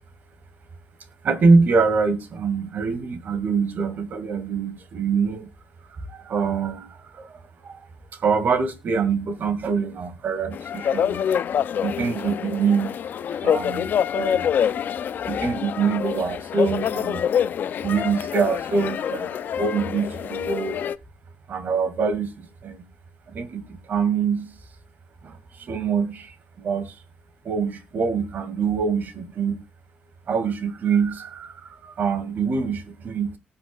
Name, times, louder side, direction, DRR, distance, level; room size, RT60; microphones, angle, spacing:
voice 1, 1.2-5.5 6.3-7.3 7.6-7.8 8.2-11.2 11.8-13.0 13.4-13.9 14.1-14.4 15.3-17.2 17.8-20.8 21.5-22.8 23.3-24.5 25.2-25.4 25.7-27.0 27.4-29.6 30.3-33.4, right 5 dB, 60° right, 2.0 m, -24 dB
sound 1, 10.5-21.0, left 8 dB, 65° left, 0.5 m, -26 dB
19.0 x 7.7 x 2.3 m
cardioid pair, 85°, 3 cm